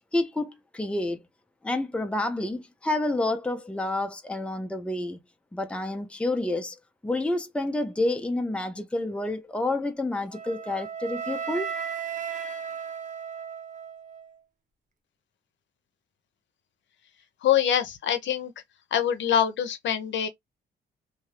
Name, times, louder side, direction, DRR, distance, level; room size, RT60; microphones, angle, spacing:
voice 1, 0.1-1.2 1.6-5.2 5.5-6.8 7.0-11.7, left 2 dB, 5° left, 0.6 m, -29 dB
Wind instrument woodwind instrument, 10.3-14.4, right 7 dB, 40° right, 0.8 m, -35 dB
voice 2, 17.4-18.5 18.9-20.3, left 9 dB, 70° left, 0.8 m, -24 dB
2.8 x 2.6 x 3.3 m
cardioid pair, 90°, 20 cm